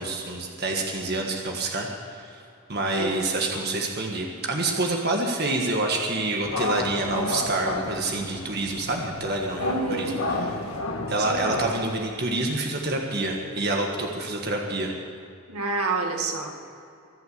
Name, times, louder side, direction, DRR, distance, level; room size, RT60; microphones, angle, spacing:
voice 1, 0.0-2.4 2.7-9.6 9.9-10.4 11.1-14.9, right 2 dB, 45° right, 1 dB, 1.6 m, -27 dB
sound 1, 6.4-11.8, left 2 dB, 75° left, 1.6 m, -31 dB
voice 2, 9.6-10.3 11.2-11.5 15.5-16.5, right 3 dB, 80° right, 2 dB, 2.0 m, -28 dB
24.0 x 8.1 x 7.0 m, 2.6 s
head